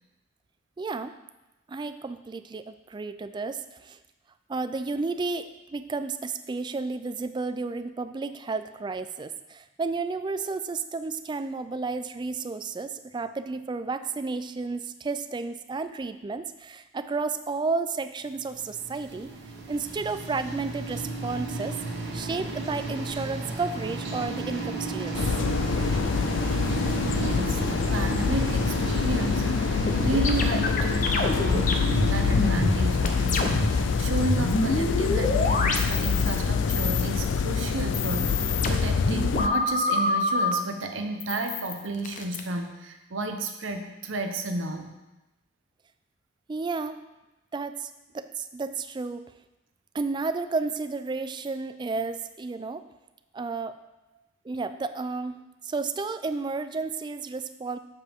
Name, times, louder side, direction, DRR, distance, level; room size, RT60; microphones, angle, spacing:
voice 1, 0.8-1.1 1.7-4.0 4.5-19.3 19.7-21.8 22.1-25.3 46.5-47.0 47.5-49.3 49.9-52.9 53.3-53.8 54.4-57.8, right 4 dB, 25° right, 11 dB, 0.3 m, -32 dB
sound 1, 18.5-37.5, right 2 dB, 60° right, 1.1 m, -34 dB
sound 2, 25.1-39.5, left 6 dB, 70° left, 0.4 m, -26 dB
voice 2, 27.1-44.9, right 2 dB, 90° right, 5 dB, 0.8 m, -32 dB
sound 3, 29.9-33.8 34.1-36.4 36.7-37.4 37.8-40.5 41.2-42.4, left 2 dB, 45° left, 0.7 m, -27 dB
7.4 x 6.8 x 3.6 m, 1.0 s
head